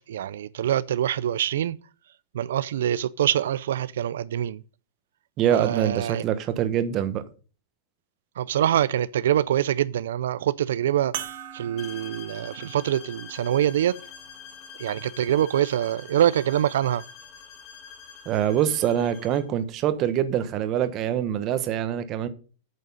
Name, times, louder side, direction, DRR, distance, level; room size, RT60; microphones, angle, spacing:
voice 1, 0.1-1.8 2.3-4.6 5.5-6.2 8.4-11.1 11.5-13.9 14.8-17.0, right 11 dB, 85° right, 0.4 m, -24 dB
voice 2, 5.4-7.2 18.3-22.3, right 10 dB, 30° right, 1.1 m, -24 dB
sound 1, 11.1-15.9 16.7-16.8 19.0-19.1, right 12 dB, 55° right, 2.0 m, -42 dB
sound 2, 11.8-19.5, left 7 dB, 35° left, 2.0 m, -45 dB
8.9 x 6.4 x 5.4 m
supercardioid pair, 155°, 0 cm